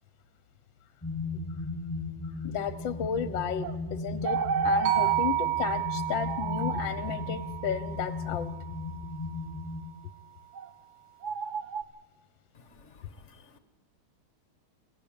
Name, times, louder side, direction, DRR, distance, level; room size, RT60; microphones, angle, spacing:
sound 1, 1.0-9.8, left 3 dB, 5° left, 4.0 m, -36 dB
voice 1, 2.4-8.5, left 8 dB, 65° left, 13 dB, 1.5 m, -33 dB
sound 2, 3.6-3.7 4.2-5.2 6.2-6.9 10.5-10.7 11.2-11.8, right 5 dB, 55° right, 0.9 m, -30 dB
sound 3, 4.9-9.1, right 15 dB, 85° right, 1.8 m, -31 dB
voice 2, 12.5-13.6, left 5 dB, 40° left, 11 dB, 1.3 m, -55 dB
22.5 x 15.0 x 8.8 m, 1.1 s
omnidirectional pair, 2.3 m